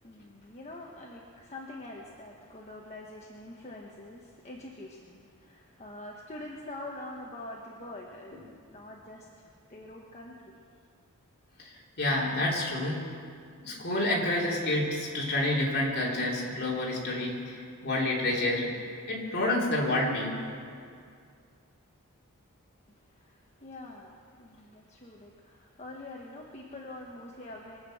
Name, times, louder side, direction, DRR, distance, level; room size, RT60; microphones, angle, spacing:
voice 1, 0.0-10.6 23.0-27.8, left 1 dB, 30° left, -2 dB, 1.2 m, -45 dB
voice 2, 11.6-13.0 13.6-18.7 19.1-20.4, left 1 dB, 50° left, -3 dB, 3.2 m, -29 dB
24.0 x 8.2 x 6.4 m, 2.3 s
head